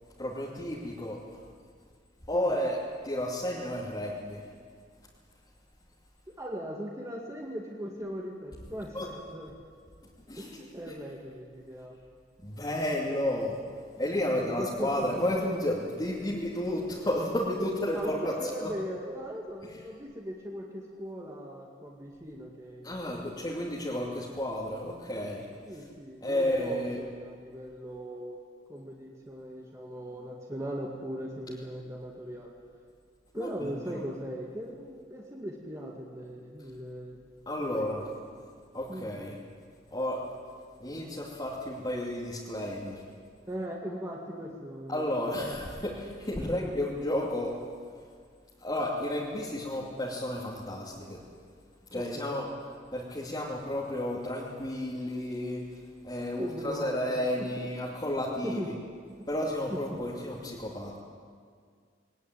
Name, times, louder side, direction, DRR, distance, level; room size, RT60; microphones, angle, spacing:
voice 1, 0.2-1.2 2.3-2.8 3.0-4.5 8.9-9.1 10.3-10.5 12.4-13.6 14.0-18.3 18.6-18.7 22.8-25.5 26.2-27.0 33.3-33.7 37.5-38.0 38.7-39.4 39.9-40.2 40.8-43.0 44.9-47.5 48.6-51.2 51.9-52.4 52.9-55.6 56.0-58.6 59.3-61.0, left 1 dB, 25° left, -5 dB, 2.6 m, -32 dB
voice 2, 6.3-9.5 10.4-12.0 14.2-15.2 17.9-23.0 25.6-28.4 28.7-32.5 33.3-37.2 37.6-38.1 38.9-39.2 43.5-45.2 46.4-46.7 51.9-52.3 56.4-57.0 57.4-57.7 58.4-58.8 59.2-59.3 59.7-60.0, equal, 15° right, -2 dB, 2.1 m, -39 dB
20.5 x 19.5 x 9.3 m, 2.1 s
head